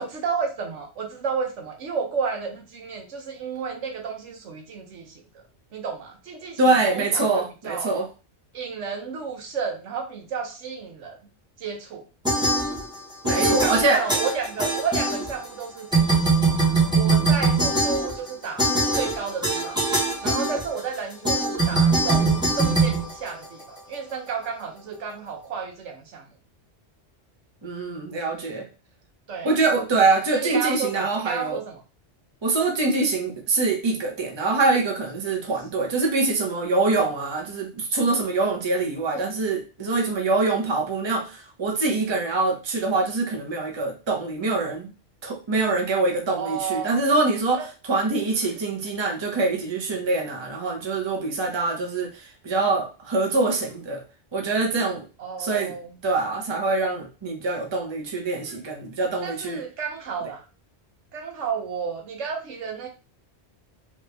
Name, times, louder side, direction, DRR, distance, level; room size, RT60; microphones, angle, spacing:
voice 1, 0.0-5.4 5.7-7.9 8.5-11.2 11.6-12.0 13.3-16.5 16.9-19.8 20.2-26.3 29.3-29.6 30.3-31.8 39.1-39.3 46.3-47.1 47.5-47.7 48.4-48.5 55.2-56.0 58.4-58.6 59.2-60.4 61.1-62.9, right 6 dB, 85° right, 1.2 m, -32 dB
voice 2, 6.6-8.1 13.2-14.0 27.6-28.7 29.4-31.6 32.4-44.9 45.2-54.0 54.3-55.1 55.4-55.7 56.0-59.6, right 3 dB, 25° right, 0.8 m, -24 dB
sound 1, 12.2-13.0 13.2-15.6 15.9-23.8, right 3 dB, 5° right, 1.0 m, -22 dB
3.2 x 2.6 x 3.3 m
omnidirectional pair, 1.2 m